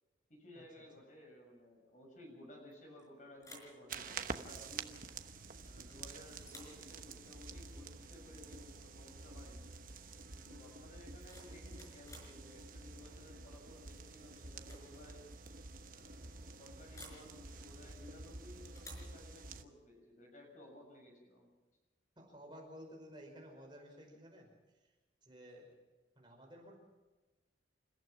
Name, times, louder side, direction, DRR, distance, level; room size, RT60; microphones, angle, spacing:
voice 1, 0.3-5.0 5.6-9.7 10.3-15.3 15.9-21.5, left 1 dB, 40° left, 2 dB, 6.8 m, -57 dB
sound 1, 2.7-3.1 3.4-3.8 5.6-6.0 6.4-6.8 8.7-8.8 9.2-9.5 11.0-12.4 13.9-14.2 14.5-14.9 15.1-15.2 16.9-17.3 18.8-19.2, equal, 15° left, 5.4 m, -56 dB
sound 2, 3.9-19.6, right 4 dB, 45° right, 1.1 m, -49 dB
voice 2, 22.2-24.9 25.2-25.7 26.2-26.8, equal, 25° right, 0 dB, 5.4 m, -54 dB
29.0 x 15.0 x 6.0 m, 1.2 s
head